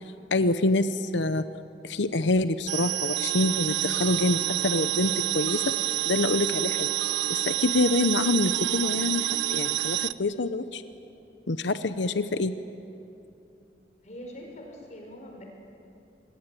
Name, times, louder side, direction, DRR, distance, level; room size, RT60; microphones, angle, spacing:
voice 1, 0.3-1.4 1.8-6.9 7.3-10.8 11.5-12.5, left 2 dB, 80° left, 11 dB, 0.9 m, -26 dB
sound 1, 2.7-10.1, right 14 dB, 80° right, 0.7 m, -28 dB
voice 2, 14.0-15.4, equal, 40° left, 1 dB, 5.5 m, -43 dB
26.5 x 21.0 x 9.3 m, 2.7 s
head